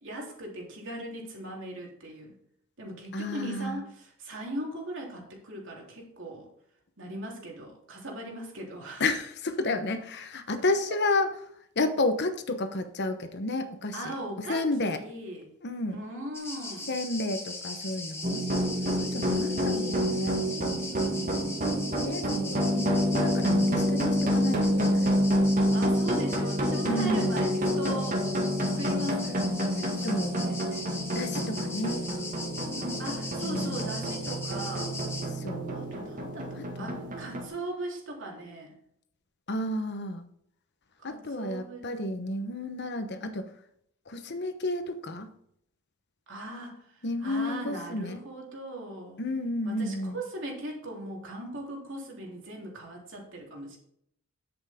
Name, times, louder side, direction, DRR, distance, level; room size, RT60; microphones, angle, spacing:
voice 1, 0.0-2.3 2.8-6.5 7.0-9.0 13.9-15.5 15.9-16.9 19.4-20.1 25.7-28.2 28.8-30.8 32.6-34.9 35.7-38.7 41.0-41.9 46.3-49.2 49.6-53.8, right 1 dB, 60° right, -1 dB, 3.3 m, -39 dB
voice 2, 3.1-3.8 9.0-11.3 11.8-14.1 14.5-15.0 15.6-16.0 16.9-18.5 19.0-25.1 26.8-27.4 30.0-30.4 31.1-32.1 33.4-33.9 35.3-35.8 36.6-37.0 39.5-40.3 41.0-43.5 44.1-45.3 47.0-48.2 49.2-50.2, left 2 dB, 55° left, 8 dB, 1.0 m, -31 dB
sound 1, 16.3-35.3, left 2 dB, 10° left, 2.5 m, -40 dB
sound 2, 18.2-37.5, equal, 40° right, 1.9 m, -28 dB
9.9 x 8.2 x 3.7 m, 0.70 s
head